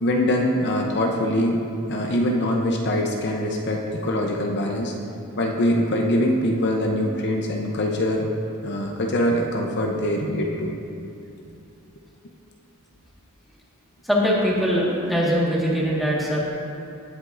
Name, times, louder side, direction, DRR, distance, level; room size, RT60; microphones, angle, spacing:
voice 1, 0.0-1.6 1.9-4.9 5.4-8.3 8.6-10.7, left 1 dB, 50° left, 0 dB, 0.8 m, -23 dB
voice 2, 14.0-16.4, equal, ahead, -6 dB, 1.6 m, -22 dB
18.0 x 8.0 x 2.6 m, 2.6 s
head